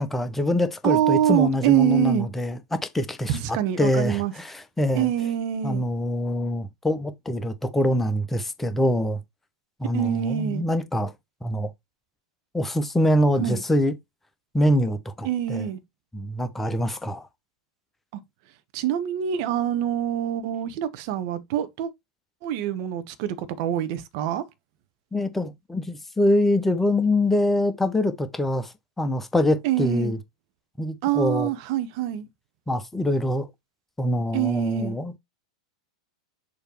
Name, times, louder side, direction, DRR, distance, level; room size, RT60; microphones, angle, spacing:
voice 1, 0.0-5.1 5.6-9.2 9.8-11.1 11.4-11.7 12.5-13.9 14.5-15.7 16.1-17.2 25.1-30.2 30.8-31.5 32.7-33.5 34.0-35.2, left 1 dB, 10° left, 1.1 m, -24 dB
voice 2, 0.8-2.3 3.3-4.3 4.9-5.8 9.9-10.6 13.4-13.6 15.2-15.8 18.7-21.9 22.4-24.4 29.6-30.1 31.0-32.3 34.3-35.0, right 11 dB, 50° right, 1.2 m, -25 dB
6.8 x 3.3 x 4.6 m
figure-of-eight pair, 95°, 3 cm